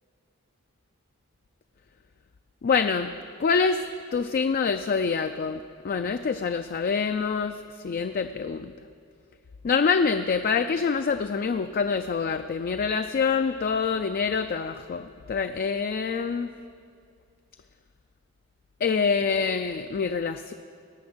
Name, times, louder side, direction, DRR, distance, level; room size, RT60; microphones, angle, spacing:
voice 1, 2.6-3.1 3.4-3.8 4.1-7.6 7.8-8.7 9.6-16.5 18.8-20.5, left 5 dB, 45° left, 8 dB, 0.3 m, -26 dB
17.5 x 7.3 x 6.1 m, 2.3 s
head